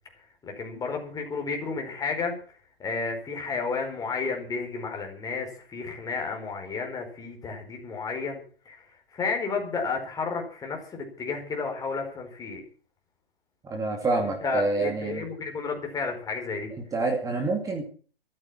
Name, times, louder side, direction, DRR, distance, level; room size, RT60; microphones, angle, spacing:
voice 1, 0.2-2.3 2.8-12.6 14.2-16.7, left 4 dB, 10° left, 2 dB, 4.9 m, -32 dB
voice 2, 13.6-15.2 16.9-17.8, right 3 dB, 10° right, 3 dB, 2.5 m, -27 dB
14.0 x 14.0 x 6.0 m, 0.42 s
figure-of-eight pair, 125°, 30 cm